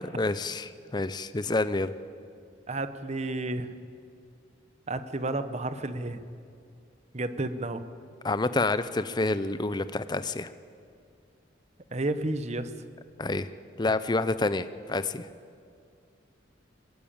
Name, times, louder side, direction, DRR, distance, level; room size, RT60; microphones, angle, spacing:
voice 1, 0.1-1.9 8.2-10.5 13.2-13.5 13.8-15.3, left 2 dB, 20° left, 13 dB, 0.5 m, -28 dB
voice 2, 2.7-3.7 4.9-6.2 7.1-7.8 11.9-12.7, right 2 dB, 35° right, 11 dB, 0.9 m, -31 dB
21.5 x 16.0 x 8.7 m, 2.3 s
head